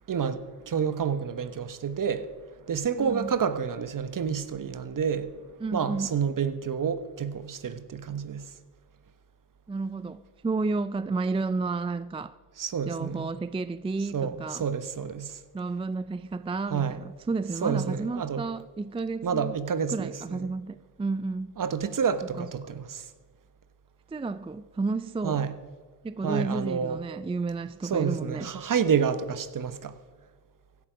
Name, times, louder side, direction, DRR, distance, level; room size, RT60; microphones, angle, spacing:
voice 1, 0.1-2.3 2.7-5.3 5.7-8.5 12.6-13.3 14.1-15.4 16.7-17.0 17.6-18.4 19.2-20.5 21.6-23.1 25.2-25.5 26.2-27.0 27.9-29.9, right 7 dB, 50° right, 1.2 m, -29 dB
voice 2, 3.0-3.4 5.6-6.2 9.7-12.3 12.9-14.7 15.5-19.5 19.9-21.6 22.4-22.5 24.1-25.5 26.0-28.5, right 3 dB, 15° right, 0.4 m, -31 dB
16.0 x 11.5 x 5.1 m
supercardioid pair, 60°, 42 cm